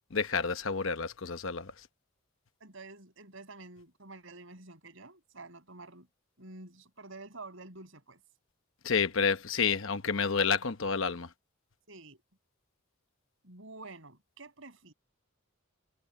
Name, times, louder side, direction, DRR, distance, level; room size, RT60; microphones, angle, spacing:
voice 1, 0.1-1.7 8.8-11.3, left 5 dB, 65° left, 1.0 m, -29 dB
voice 2, 2.6-6.1 6.4-8.2 11.9-12.2 13.4-14.9, right 3 dB, 65° right, 6.6 m, -49 dB
head